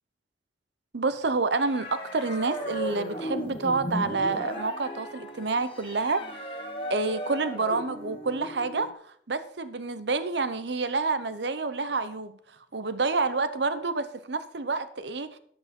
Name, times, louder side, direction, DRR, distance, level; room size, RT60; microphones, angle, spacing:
voice 1, 0.9-6.6 6.9-8.9 9.3-12.4 12.7-15.4, right 3 dB, 70° right, 13 dB, 0.8 m, -28 dB
sound 1, 1.5-8.9, equal, 30° left, 1.7 m, -36 dB
10.5 x 8.1 x 5.3 m, 0.63 s
head